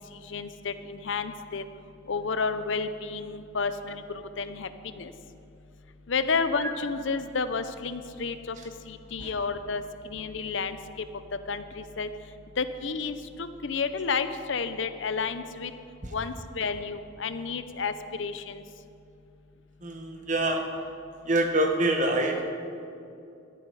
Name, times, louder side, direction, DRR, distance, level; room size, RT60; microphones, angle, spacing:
voice 1, 0.1-1.7 2.1-5.1 6.1-8.6 8.9-11.1 11.5-12.1 12.6-15.7 16.1-18.6, left 4 dB, 65° left, 11 dB, 0.6 m, -31 dB
voice 2, 19.8-20.6 21.2-22.5, right 1 dB, 40° right, 3 dB, 1.3 m, -25 dB
13.5 x 11.0 x 4.8 m, 2.6 s
head